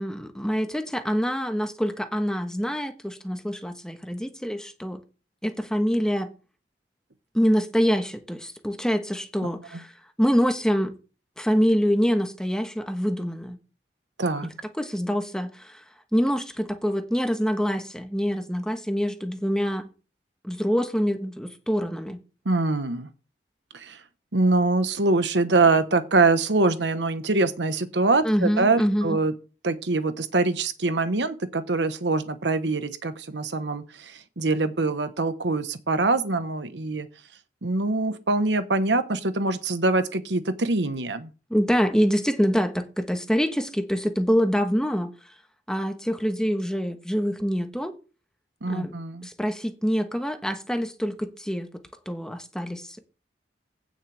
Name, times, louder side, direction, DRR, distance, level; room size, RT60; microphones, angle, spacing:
voice 1, 0.0-5.0 5.4-6.3 7.3-9.9 10.2-11.0 11.4-13.6 14.8-15.8 16.1-19.9 20.4-22.2 28.2-29.2 41.5-45.1 45.7-47.9 48.7-48.9 49.2-53.0, equal, 5° left, 1.2 m, -25 dB
voice 2, 14.2-14.5 22.4-23.1 23.7-24.0 24.3-29.3 29.6-37.1 37.6-41.3 48.6-49.3, right 3 dB, 90° right, 1.2 m, -24 dB
16.5 x 6.5 x 3.4 m
head